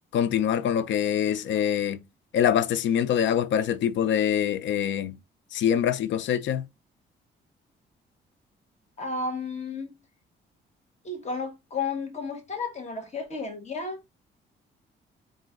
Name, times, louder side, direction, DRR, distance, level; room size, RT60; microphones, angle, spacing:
voice 1, 0.1-2.0 2.3-5.2 5.5-6.6, left 9 dB, 70° left, 0.5 m, -24 dB
voice 2, 9.0-9.9 11.0-14.0, left 4 dB, 35° left, 1.4 m, -32 dB
3.8 x 2.6 x 3.7 m
cardioid pair, 90°, 20 cm